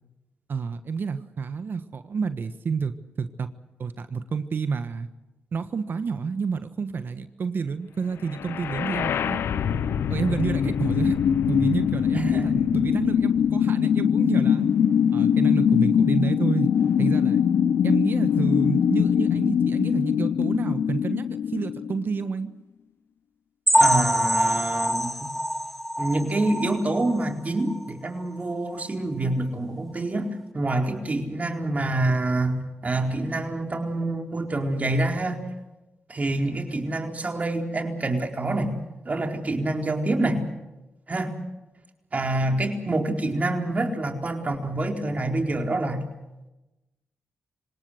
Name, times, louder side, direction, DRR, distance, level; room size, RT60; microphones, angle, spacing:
voice 1, 0.5-3.5 3.8-5.1 5.5-9.4 10.1-11.2 11.5-14.6 15.1-16.7 17.0-17.4 17.8-22.5, right 5 dB, 60° right, 11 dB, 1.3 m, -29 dB
sound 1, 8.3-22.3, left 8 dB, 80° left, 0.8 m, -22 dB
voice 2, 12.1-12.5 23.8-25.3 26.0-35.4 36.1-38.7 39.0-40.4 41.1-41.3 42.1-46.0, right 2 dB, 40° right, 3 dB, 4.3 m, -26 dB
sound 2, 23.7-27.3 27.7-27.8 28.2-28.3 28.8-28.9, equal, 5° left, 2.8 m, -24 dB
27.0 x 18.0 x 8.0 m, 1.0 s
cardioid pair, 55°, 4 cm